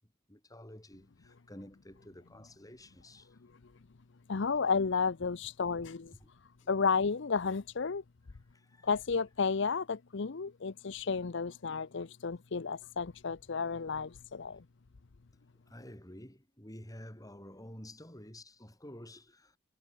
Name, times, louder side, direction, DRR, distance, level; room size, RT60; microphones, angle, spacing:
voice 1, 0.3-3.3 6.1-6.3 6.6-6.7 8.3-8.9 15.7-19.6, left 1 dB, 20° left, 7.1 m, -51 dB
voice 2, 4.3-6.1 6.7-8.0 8.8-14.6, left 5 dB, 65° left, 0.7 m, -32 dB
head